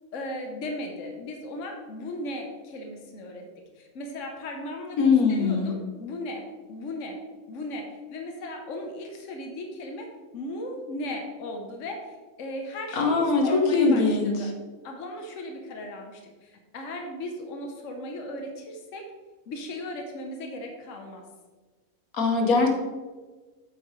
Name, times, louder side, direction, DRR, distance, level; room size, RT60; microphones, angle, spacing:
voice 1, 0.1-3.5 3.8-7.2 7.5-14.5 14.8-19.1 19.5-21.2, left 1 dB, 60° left, 3 dB, 1.3 m, -37 dB
voice 2, 5.0-5.7 12.9-13.4 13.7-14.3 22.1-22.7, left 4 dB, 85° left, 2 dB, 1.6 m, -21 dB
8.0 x 7.7 x 3.2 m, 1.3 s
omnidirectional pair, 1.5 m